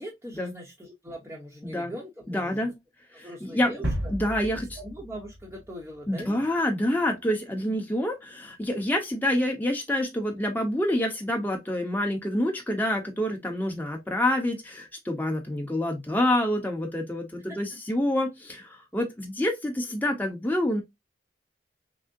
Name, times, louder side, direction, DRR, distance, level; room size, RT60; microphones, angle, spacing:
voice 1, 0.0-2.7 3.1-4.1 4.5-6.4 7.5-7.8 17.5-17.8, equal, 10° right, 0.9 m, -41 dB
voice 2, 2.3-2.7 3.4-3.7 4.1-4.8 6.1-18.6 18.9-20.8, left 1 dB, 10° left, 0.9 m, -27 dB
sound 1, 3.8-6.3, right 1 dB, 75° right, 1.6 m, -34 dB
6.2 x 2.1 x 2.6 m
head